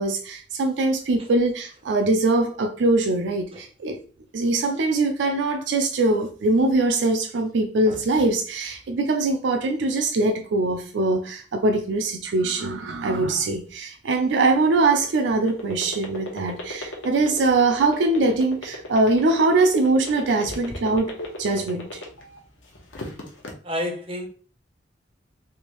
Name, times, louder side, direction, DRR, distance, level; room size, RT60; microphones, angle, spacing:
voice 1, 0.0-4.0 4.3-21.1 21.4-22.0, right 2 dB, 70° right, 0.4 m, -22 dB
sound 1, 14.3-22.4 22.8-23.5, left 1 dB, 80° left, 0.8 m, -35 dB
voice 2, 23.6-24.3, left 1 dB, 30° right, 0.6 m, -30 dB
3.4 x 2.6 x 2.9 m
head